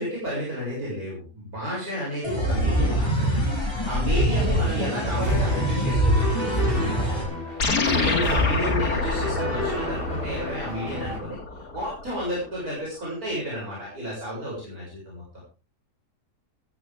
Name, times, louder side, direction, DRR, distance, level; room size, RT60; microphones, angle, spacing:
voice 1, 0.0-7.4 7.9-15.2, equal, 60° right, -6 dB, 7.8 m, -32 dB
sound 1, 2.2-7.2, equal, 15° left, 5.8 m, -24 dB
sound 2, 5.2-11.2, left 2 dB, 35° right, 3.6 m, -30 dB
sound 3, 7.6-12.3, left 3 dB, 80° left, 3.0 m, -28 dB
16.0 x 15.5 x 3.7 m, 0.34 s
omnidirectional pair, 1.7 m